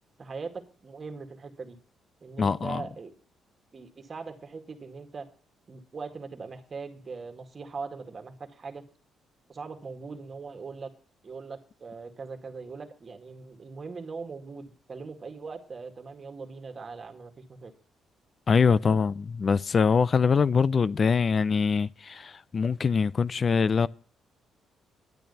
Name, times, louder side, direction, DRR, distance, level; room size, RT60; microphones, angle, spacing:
voice 1, 0.2-1.8 2.2-3.1 3.7-5.3 5.7-8.8 9.5-10.9 11.2-17.7 18.7-19.0, right 4 dB, 35° right, 2.1 m, -40 dB
voice 2, 2.4-2.8 18.5-23.9, left 5 dB, 40° left, 0.5 m, -23 dB
10.5 x 9.2 x 5.5 m
cardioid pair, 90°, 0 cm